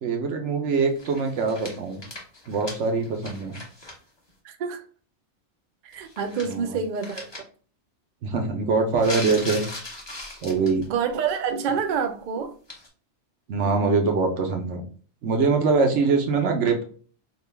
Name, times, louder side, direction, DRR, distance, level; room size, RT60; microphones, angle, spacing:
voice 1, 0.0-2.0 2.5-3.6 6.4-6.8 8.2-9.6 10.4-10.9 13.5-14.8 15.2-16.8, right 4 dB, 85° right, 1.1 m, -23 dB
sound 1, 1.0-4.0 4.3-4.4 5.9-6.6 7.0-7.4 9.0-10.9 11.3-11.6 12.7-12.9, left 2 dB, 25° left, 0.8 m, -38 dB
voice 2, 4.4-4.8 5.8-7.2 10.9-12.6, right 6 dB, 55° right, 0.5 m, -27 dB
3.8 x 2.3 x 3.3 m
omnidirectional pair, 1.2 m